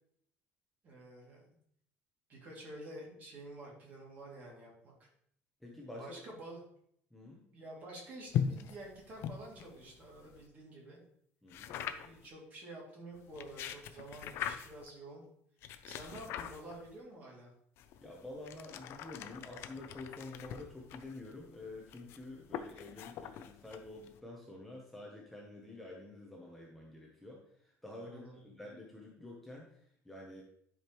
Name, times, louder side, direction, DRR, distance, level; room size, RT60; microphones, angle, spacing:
voice 1, 0.8-1.5 2.3-5.1 6.0-6.6 7.2-11.0 11.8-15.2 15.9-17.5 28.0-28.4, right 1 dB, 35° right, -2 dB, 2.5 m, -49 dB
voice 2, 5.6-6.2 7.1-7.4 11.4-11.8 18.0-30.4, left 2 dB, 5° left, -3 dB, 0.9 m, -49 dB
sound 1, 8.3-10.5 11.5-12.3 13.2-14.9 15.6-17.0 17.8-24.2, left 9 dB, 55° left, 0.5 m, -41 dB
10.5 x 5.1 x 3.1 m, 0.69 s
cardioid pair, 175°, 5 cm